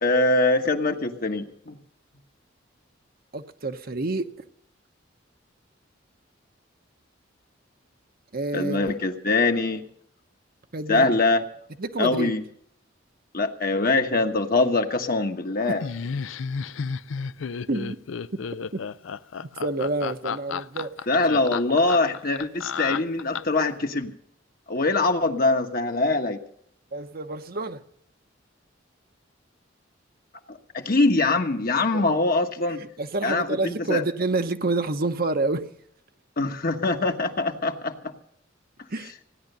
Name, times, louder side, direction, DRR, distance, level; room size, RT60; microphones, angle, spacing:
voice 1, 0.0-1.8 8.5-9.8 10.9-11.4 12.0-12.4 13.3-15.8 21.1-24.1 24.7-26.4 30.5-32.8 33.2-34.0 36.4-37.9, left 2 dB, 50° left, 5 dB, 1.3 m, -23 dB
voice 2, 3.3-4.3 8.3-8.9 10.7-11.1 11.8-12.3 15.7-15.8 17.7-18.0 18.7-18.8 19.6-20.9 26.9-27.8 31.9-32.0 32.8-35.7 38.9-39.1, right 2 dB, 50° right, 8 dB, 1.0 m, -28 dB
Laughter, 15.8-23.7, left 6 dB, 80° left, 0.5 m, -32 dB
16.0 x 10.5 x 6.8 m, 0.68 s
head